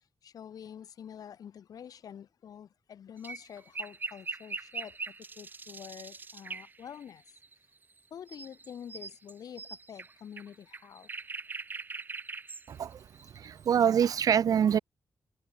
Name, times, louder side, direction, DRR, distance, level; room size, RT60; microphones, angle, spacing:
voice 1, 0.2-7.2 8.1-11.1, left 8 dB, 85° left, 7.7 m, -47 dB
sound 1, 3.2-8.0 8.3-14.0, right 4 dB, 30° right, 4.0 m, -42 dB
voice 2, 12.7-13.0 13.4-14.8, right 8 dB, 75° right, 2.3 m, -25 dB
wide cardioid pair, 155°, 6 cm